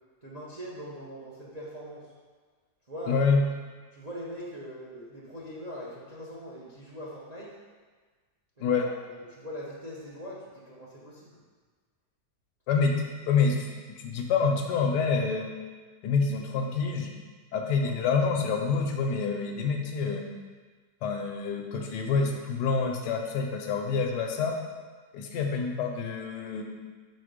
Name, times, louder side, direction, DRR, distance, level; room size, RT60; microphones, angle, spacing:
voice 1, 0.2-2.1 2.9-3.3 3.9-7.6 8.6-11.3, equal, 35° right, -5 dB, 0.6 m, -41 dB
voice 2, 3.1-3.4 8.6-8.9 12.7-13.7 14.0-15.5 16.0-17.1 17.5-20.2 21.0-24.6 25.1-26.6, left 5 dB, 90° left, 3 dB, 1.3 m, -27 dB
4.5 x 4.3 x 5.0 m, 1.4 s
omnidirectional pair, 1.8 m